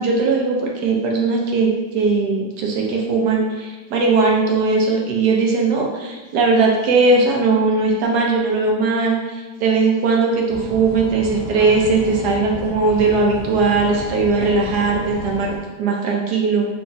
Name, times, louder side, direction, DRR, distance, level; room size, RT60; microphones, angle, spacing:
voice 1, 0.0-15.5 15.8-16.7, right 3 dB, 75° right, -1 dB, 1.2 m, -19 dB
sound 1, 10.5-15.6, right 1 dB, 60° right, 0.5 m, -31 dB
3.4 x 2.4 x 3.9 m, 1.2 s
omnidirectional pair, 1.8 m